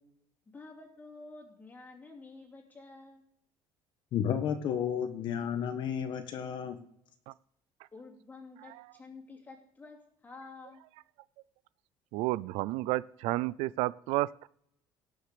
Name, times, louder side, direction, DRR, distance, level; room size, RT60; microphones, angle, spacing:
voice 1, 0.5-3.2 7.9-10.8, left 3 dB, 15° left, 0 dB, 2.7 m, -50 dB
voice 2, 4.1-6.8, left 8 dB, 50° left, 8 dB, 1.2 m, -32 dB
voice 3, 12.1-14.5, right 18 dB, 80° right, 19 dB, 0.4 m, -31 dB
17.5 x 6.4 x 5.0 m, 0.70 s
cardioid pair, 155°, 10 cm